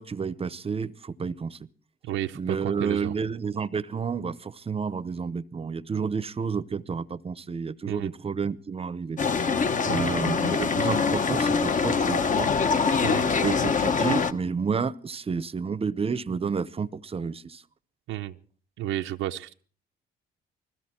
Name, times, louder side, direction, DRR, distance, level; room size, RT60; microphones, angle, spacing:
voice 1, 0.0-1.6 2.3-9.5 9.9-12.5 13.4-17.6, right 5 dB, 30° right, 18 dB, 0.7 m, -30 dB
voice 2, 2.0-3.1 7.9-8.1 9.9-10.1 13.0-13.3 18.1-18.4 18.8-19.5, right 13 dB, 85° right, 6 dB, 0.7 m, -32 dB
sound 1, 9.2-14.3, left 5 dB, 40° left, 1.0 m, -24 dB
20.5 x 15.0 x 4.4 m, 0.44 s
cardioid pair, 90°, 20 cm